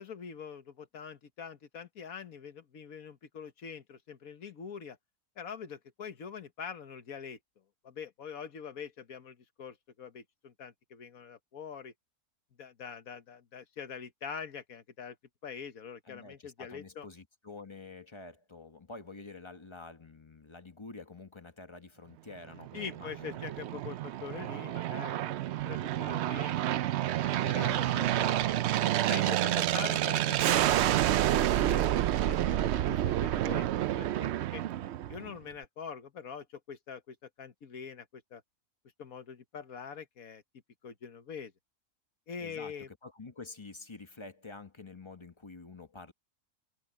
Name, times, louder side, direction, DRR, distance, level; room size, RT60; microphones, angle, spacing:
voice 1, 0.0-5.0 5.4-7.4 7.8-11.9 12.6-15.2 15.4-17.1 22.7-26.5 27.4-28.7 29.1-34.6 35.1-38.4 39.0-40.4 40.8-41.5 42.3-42.9, left 6 dB, 65° left, 1.7 m, -44 dB
voice 2, 16.0-23.4 42.4-46.1, left 3 dB, 20° left, 0.9 m, -48 dB
Aircraft, 22.6-35.4, right 13 dB, 75° right, 0.6 m, -29 dB
omnidirectional pair, 1.7 m